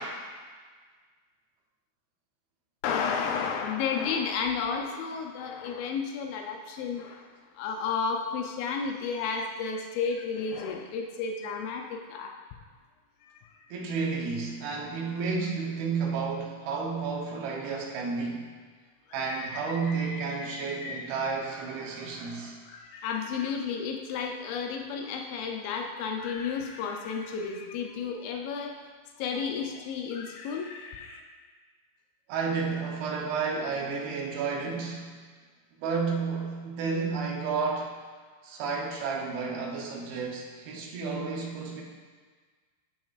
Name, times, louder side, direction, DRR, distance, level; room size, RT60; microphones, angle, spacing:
voice 1, 2.8-7.3 7.5-12.3 13.2-13.7 19.2-21.1 22.7-28.7 29.2-31.2, left 5 dB, 90° left, 2 dB, 2.0 m, -32 dB
voice 2, 13.7-18.5 19.1-22.6 32.3-35.1 35.8-38.0 38.4-41.8, right 5 dB, 75° right, -1 dB, 2.6 m, -31 dB
13.5 x 6.1 x 2.4 m, 1.5 s
omnidirectional pair, 4.8 m